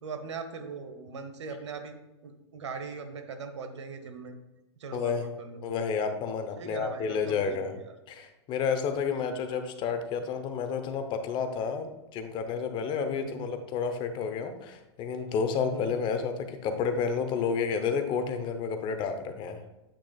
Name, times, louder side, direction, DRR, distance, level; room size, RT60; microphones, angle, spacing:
voice 1, 0.0-1.9 2.2-4.4 4.8-5.7 6.6-7.9 9.0-9.3 13.2-13.5 15.6-15.9, right 5 dB, 85° right, 7 dB, 1.0 m, -40 dB
voice 2, 4.9-5.3 5.6-7.7 8.1-19.6, left 6 dB, 35° left, 7 dB, 0.8 m, -30 dB
8.5 x 6.1 x 2.3 m, 1.0 s
hypercardioid pair, 125°, 15 cm